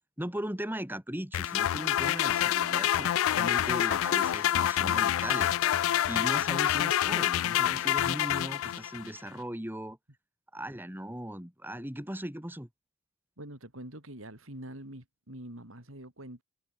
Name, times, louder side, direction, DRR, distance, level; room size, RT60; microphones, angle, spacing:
voice 1, 0.2-5.5 6.1-10.0 10.5-12.7, equal, 10° right, 4.5 m, -38 dB
sound 1, 1.3-9.1, left 11 dB, 75° left, 0.3 m, -27 dB
voice 2, 13.4-16.4, right 1 dB, 75° right, 6.0 m, -45 dB
head